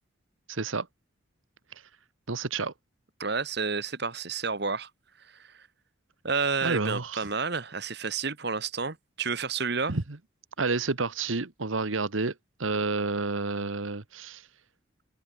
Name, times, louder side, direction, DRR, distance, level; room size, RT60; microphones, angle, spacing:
voice 1, 0.5-0.9 1.7-1.8 2.3-2.7 6.6-7.3 9.9-10.2 10.6-12.3 12.6-14.5, right 3 dB, 80° right, 1.3 m, -30 dB
voice 2, 3.2-4.9 5.4-5.5 6.2-9.9, right 4 dB, 55° right, 1.6 m, -30 dB
open air
head